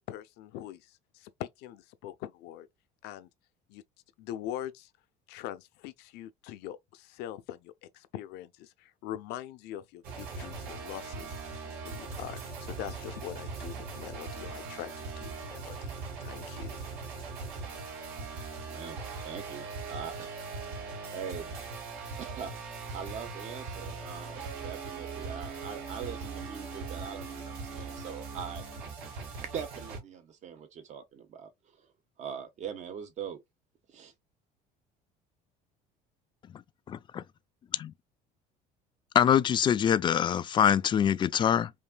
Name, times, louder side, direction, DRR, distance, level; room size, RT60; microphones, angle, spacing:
voice 1, 0.1-0.8 1.4-2.7 3.0-3.3 3.7-3.8 4.2-4.9 5.3-6.8 7.2-7.7 8.1-8.5 9.0-11.3 11.6-15.9 16.2-16.8, left 12 dB, 70° left, 0.7 m, -42 dB
sound 1, 10.0-30.0, right 4 dB, 75° right, 2.9 m, -40 dB
voice 2, 18.7-20.4 21.1-21.5 22.1-22.5 22.9-28.6 29.5-31.5 31.8-31.9 32.2-33.4 33.9-34.1, right 7 dB, 45° right, 1.1 m, -42 dB
voice 3, 36.9-37.2 37.7-37.9 39.1-41.7, left 9 dB, 25° left, 0.3 m, -24 dB
5.2 x 2.7 x 2.2 m
cardioid pair, 135°, 17 cm